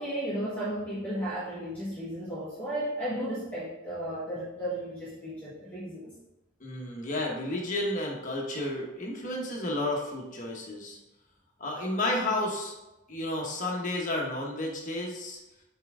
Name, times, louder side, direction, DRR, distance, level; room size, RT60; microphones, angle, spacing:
voice 1, 0.0-6.1, right 1 dB, 10° left, -11 dB, 1.4 m, -34 dB
voice 2, 6.6-11.0 11.6-12.7 13.1-15.4, left 1 dB, 35° left, -1 dB, 1.2 m, -32 dB
5.7 x 4.6 x 3.7 m, 0.99 s
head